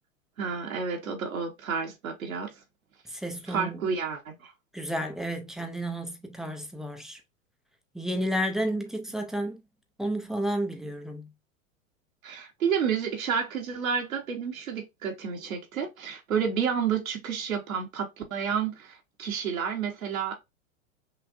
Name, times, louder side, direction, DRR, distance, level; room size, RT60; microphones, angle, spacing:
voice 1, 0.4-2.5 3.5-4.5 12.2-20.3, right 7 dB, 80° right, 1.3 m, -30 dB
voice 2, 3.1-3.8 4.7-7.2 7.9-9.6 10.0-11.3, right 1 dB, ahead, 0.4 m, -31 dB
5.7 x 2.6 x 2.5 m
hypercardioid pair, 100°, 40 cm